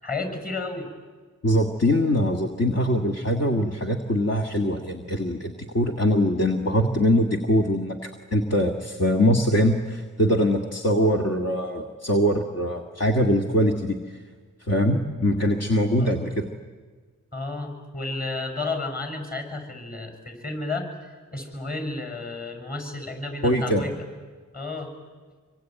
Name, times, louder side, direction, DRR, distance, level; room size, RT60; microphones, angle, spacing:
voice 1, 0.0-0.9 16.0-16.1 17.3-20.9 21.3-23.9 24.5-24.9, left 3 dB, 30° left, 6 dB, 7.3 m, -32 dB
voice 2, 1.4-14.2 14.6-16.5 23.4-23.8, equal, 50° left, 3 dB, 2.0 m, -23 dB
26.5 x 24.5 x 9.2 m, 1.5 s
wide cardioid pair, 75°, 31 cm